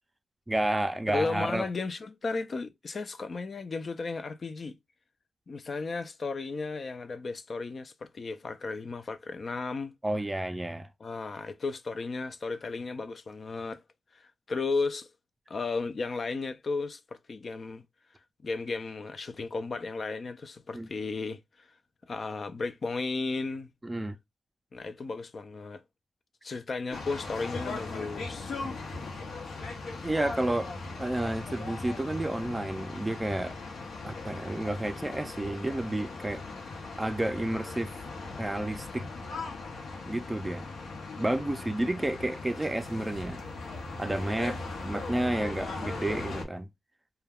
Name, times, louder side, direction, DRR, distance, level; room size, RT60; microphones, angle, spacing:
voice 1, 0.5-1.7 10.0-10.9 20.7-20.9 23.8-24.2 30.0-30.7 31.0-33.6 34.0-36.4 37.0-38.0 38.4-39.1 40.1-40.7 41.2-43.4 44.0-46.7, right 1 dB, 15° right, 0.4 m, -31 dB
voice 2, 1.1-4.8 5.5-9.9 11.0-13.8 14.1-15.1 15.5-17.0 17.3-17.8 18.4-21.7 22.1-23.7 24.7-25.8 26.4-28.5, left 3 dB, 50° left, 0.4 m, -34 dB
sound 1, 26.9-46.4, left 3 dB, 80° left, 0.7 m, -39 dB
2.2 x 2.2 x 3.3 m
cardioid pair, 75°, 0 cm